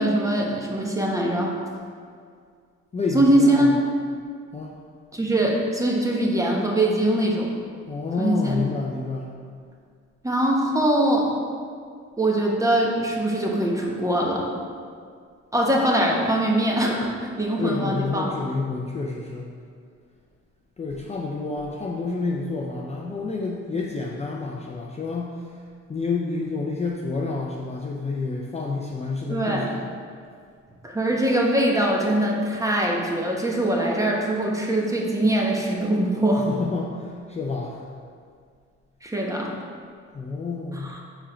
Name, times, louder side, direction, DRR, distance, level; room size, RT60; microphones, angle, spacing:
voice 1, 0.0-1.5 3.1-3.7 5.1-7.5 8.2-8.6 10.2-11.3 12.2-14.5 15.5-18.3 29.3-29.7 30.8-36.5 39.0-39.6 40.7-41.0, right 1 dB, 10° right, -2 dB, 1.0 m, -22 dB
voice 2, 2.9-3.7 4.5-4.8 7.9-9.3 17.6-19.5 20.8-25.4 25.9-29.8 36.3-37.8 40.1-40.9, left 3 dB, 20° left, -1 dB, 0.5 m, -29 dB
4.7 x 4.4 x 4.9 m, 2.1 s
cardioid pair, 90°, 30 cm